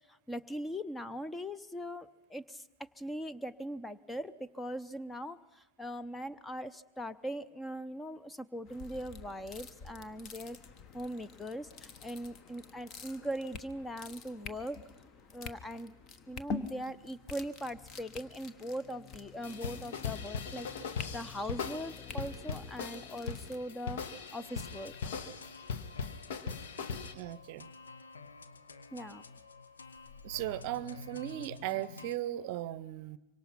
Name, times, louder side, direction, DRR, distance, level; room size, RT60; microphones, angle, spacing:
voice 1, 0.1-2.6 3.0-10.6 10.9-14.8 15.3-15.9 16.3-24.0 24.3-25.0 28.9-29.2, equal, 10° left, 15 dB, 0.7 m, -40 dB
sound 1, 8.6-23.6, left 4 dB, 35° left, 1.3 m, -47 dB
sound 2, 19.4-27.1, left 5 dB, 55° left, 1.4 m, -40 dB
sound 3, 24.4-32.2, left 4 dB, 70° left, 1.0 m, -50 dB
voice 2, 27.1-27.7 30.2-33.2, right 13 dB, 45° right, 19 dB, 0.7 m, -37 dB
25.5 x 24.0 x 5.8 m, 1.0 s
figure-of-eight pair, 90°, 0 cm